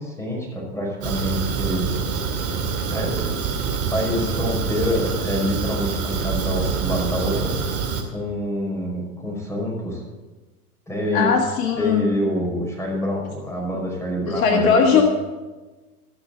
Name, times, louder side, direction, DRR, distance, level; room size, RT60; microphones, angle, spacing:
voice 1, 0.0-1.9 2.9-3.4 3.9-7.8 8.1-10.0 10.9-11.3 11.8-15.0, left 1 dB, 5° left, -2 dB, 5.3 m, -26 dB
Fire, 1.0-8.0, right 5 dB, 30° right, 2.4 m, -26 dB
voice 2, 11.1-12.0 14.3-15.0, left 6 dB, 60° left, 3 dB, 1.6 m, -18 dB
15.0 x 6.5 x 7.6 m, 1.2 s
hypercardioid pair, 95°, 46 cm